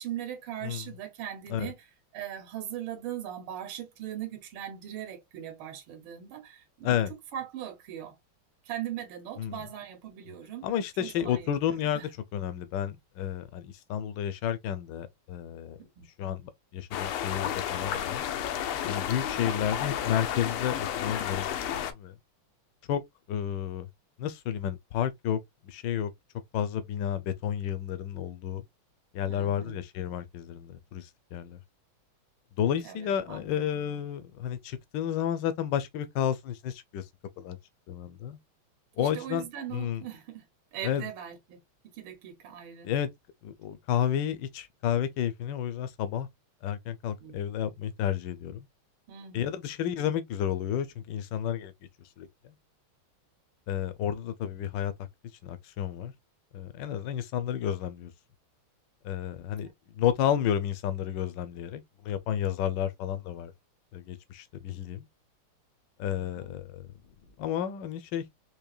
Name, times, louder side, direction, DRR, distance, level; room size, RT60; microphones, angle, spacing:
voice 1, 0.0-1.8 2.1-7.0 7.3-8.1 8.7-10.7 11.0-12.1 15.8-16.1 29.3-29.8 32.8-33.7 39.0-40.4 40.7-41.6 41.9-42.9 47.2-47.4 49.1-49.6 59.6-59.7 66.2-66.5, right 10 dB, 70° right, 1.8 m, -40 dB
voice 2, 10.6-15.8 16.2-18.2 18.8-22.2 22.9-23.0 23.3-23.9 24.2-26.1 26.5-28.6 29.1-31.6 32.6-37.1 37.4-37.6 37.9-38.4 39.0-39.4 39.7-40.1 40.8-41.1 42.8-43.1 43.4-46.3 46.6-48.7 49.3-51.7 52.2-52.5 53.7-54.9 55.4-56.1 56.5-58.1 59.0-63.5 63.9-65.1 66.0-66.9 67.4-68.2, left 9 dB, 70° left, 1.2 m, -31 dB
sound 1, 16.9-21.9, left 10 dB, 85° left, 1.5 m, -32 dB
4.8 x 2.8 x 2.3 m
omnidirectional pair, 2.4 m